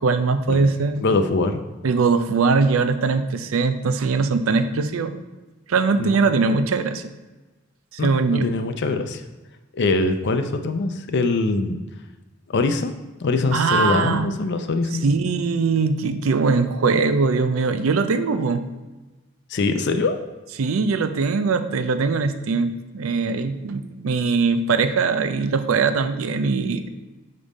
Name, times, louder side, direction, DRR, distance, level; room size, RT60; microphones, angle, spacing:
voice 1, 0.0-1.0 1.8-5.2 5.7-7.0 7.9-8.5 13.5-14.3 14.9-18.6 20.6-26.9, right 4 dB, 85° right, 10 dB, 0.5 m, -21 dB
voice 2, 1.0-1.6 6.0-6.2 8.0-9.2 9.7-11.8 12.5-12.9 13.2-15.0 19.5-20.2, left 3 dB, 60° left, 8 dB, 0.5 m, -23 dB
5.3 x 5.2 x 4.0 m, 1.2 s
head